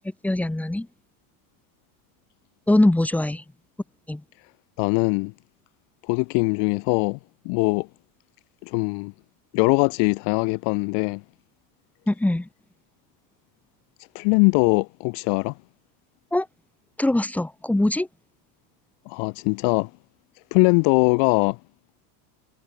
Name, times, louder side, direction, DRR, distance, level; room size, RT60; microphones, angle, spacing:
voice 1, 0.2-0.9 2.7-3.4 4.1-4.2 12.1-12.5 16.3-16.5 17.0-18.1, left 1 dB, 5° left, 1.1 m, -22 dB
voice 2, 4.8-5.3 6.1-7.2 7.4-7.9 8.6-9.1 9.5-11.2 14.1-15.5 19.0-19.9 20.5-21.6, left 36 dB, 55° left, 1.7 m, -21 dB
cardioid pair, 155°, 48 cm